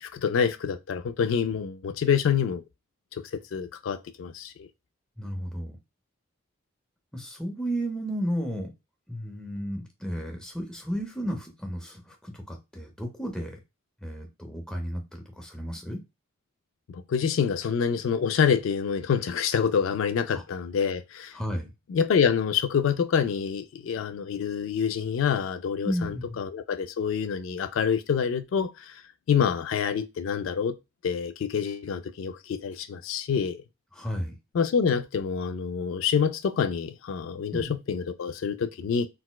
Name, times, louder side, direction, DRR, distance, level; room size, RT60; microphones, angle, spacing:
voice 1, 0.0-2.6 3.1-3.2 3.5-4.7 16.9-21.3 21.9-29.0 29.3-30.8 31.0-33.6 34.5-39.1, left 7 dB, 75° left, 0.3 m, -27 dB
voice 2, 5.2-5.8 7.1-8.7 9.1-13.6 14.0-16.0 20.3-20.4 21.3-21.7 25.8-26.4 33.9-34.3 37.5-37.7, equal, 5° left, 0.6 m, -33 dB
4.0 x 2.1 x 2.2 m
head